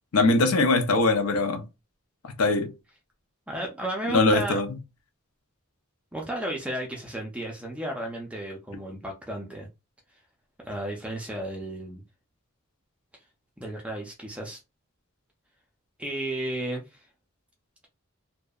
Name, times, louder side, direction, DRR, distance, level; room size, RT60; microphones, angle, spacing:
voice 1, 0.1-1.7 2.2-2.7 4.1-4.7, left 2 dB, 80° left, 0.6 m, -22 dB
voice 2, 3.5-4.6 6.1-9.7 10.6-12.0 13.6-14.6 16.0-17.1, right 1 dB, 5° right, 0.4 m, -33 dB
2.6 x 2.1 x 2.3 m
head